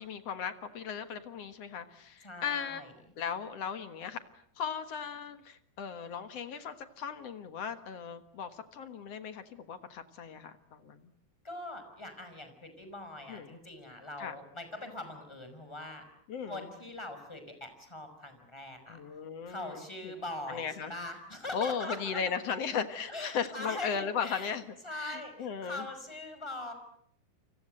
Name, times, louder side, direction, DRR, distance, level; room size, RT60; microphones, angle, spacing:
voice 1, 0.0-2.8 3.2-4.2 4.6-11.1 13.3-13.6 14.2-14.4 16.3-16.7 18.9-20.1 20.5-20.9 21.5-25.9, left 7 dB, 55° left, 10 dB, 2.2 m, -37 dB
voice 2, 2.2-2.9 11.4-16.0 16.5-19.0 19.5-22.2 23.1-24.5 24.8-26.7, left 2 dB, 5° left, 8 dB, 5.3 m, -42 dB
29.5 x 25.5 x 7.8 m, 0.69 s
omnidirectional pair, 3.9 m